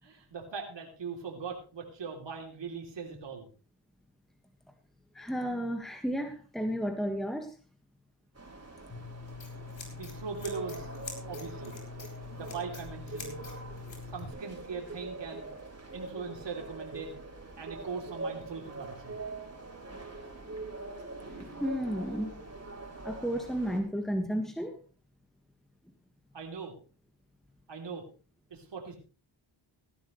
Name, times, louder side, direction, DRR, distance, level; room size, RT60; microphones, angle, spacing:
voice 1, 0.0-3.5 9.9-10.9 11.3-11.7 12.3-13.4 14.1-15.5 15.9-17.2 17.6-19.2 26.3-26.7 27.7-28.0 28.5-28.9, right 5 dB, 60° right, 1 dB, 3.3 m, -40 dB
voice 2, 5.1-7.5 21.3-22.3 23.0-24.8, equal, ahead, 5 dB, 1.7 m, -33 dB
sound 1, 8.3-23.8, right 3 dB, 30° right, 4.0 m, -43 dB
Scissors, 8.9-14.3, left 5 dB, 60° left, 4.5 m, -44 dB
17.0 x 12.0 x 3.2 m, 0.35 s
cardioid pair, 75°, 49 cm